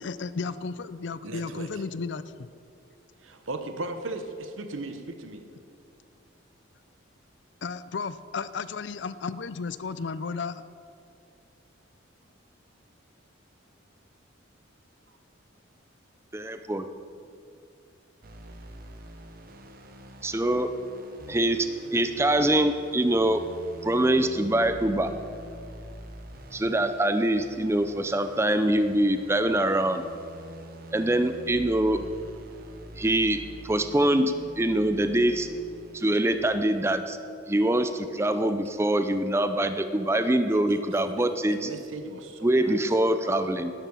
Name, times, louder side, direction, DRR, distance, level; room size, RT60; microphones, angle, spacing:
voice 1, 0.0-2.5 7.6-10.6, left 4 dB, 60° left, 15 dB, 0.4 m, -34 dB
voice 2, 1.2-1.7 3.2-5.4 31.9-32.6 40.5-40.6 41.0-43.6, right 2 dB, 80° right, 7 dB, 1.1 m, -38 dB
voice 3, 16.3-16.9 20.2-20.7 21.3-21.7 21.9-23.4 23.8-25.1 26.5-30.0 30.9-32.0 33.0-35.5 35.9-37.2 37.5-41.7 42.4-43.7, right 1 dB, 15° right, 9 dB, 0.5 m, -24 dB
sound 1, 18.2-36.6, right 1 dB, 45° right, 1.0 m, -45 dB
11.5 x 11.5 x 5.5 m, 2.4 s
head